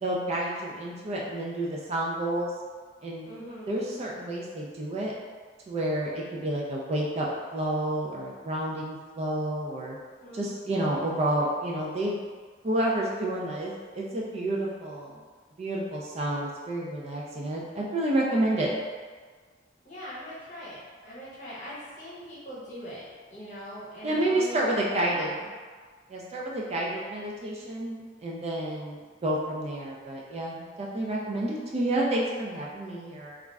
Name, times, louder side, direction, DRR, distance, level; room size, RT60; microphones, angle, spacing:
voice 1, 0.0-2.5 3.0-3.2 3.7-5.1 5.7-7.3 7.5-10.0 10.3-12.2 12.6-15.2 15.6-18.7 24.0-25.3 26.1-33.4, right 1 dB, 35° right, -3 dB, 0.3 m, -29 dB
voice 2, 3.2-3.8 10.2-10.6 19.8-25.5, equal, 40° left, -8 dB, 1.0 m, -42 dB
2.4 x 2.1 x 3.3 m, 1.5 s
head